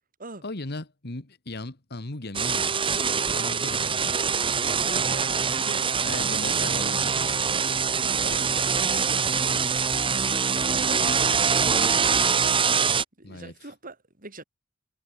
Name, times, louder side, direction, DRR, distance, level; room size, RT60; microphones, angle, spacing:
voice 1, 0.4-2.7 3.2-4.2 6.0-7.5 13.2-13.7, left 2 dB, 55° left, 1.8 m, -37 dB
sound 1, 2.3-13.0, right 6 dB, 25° right, 1.2 m, -24 dB
voice 2, 4.7-6.1 7.5-9.1 10.6-12.3 12.6-14.4, right 3 dB, 45° right, 4.1 m, -44 dB
head